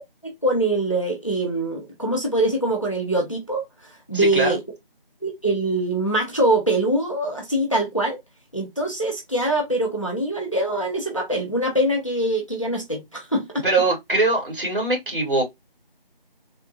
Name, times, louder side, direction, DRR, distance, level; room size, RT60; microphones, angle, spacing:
voice 1, 0.2-3.6 4.1-4.6 5.2-8.2 8.5-13.6, right 1 dB, 35° left, 0.6 m, -23 dB
voice 2, 4.1-4.6 13.6-15.4, right 2 dB, 60° right, 2.1 m, -22 dB
3.4 x 2.1 x 2.6 m
figure-of-eight pair, 170°, 30 cm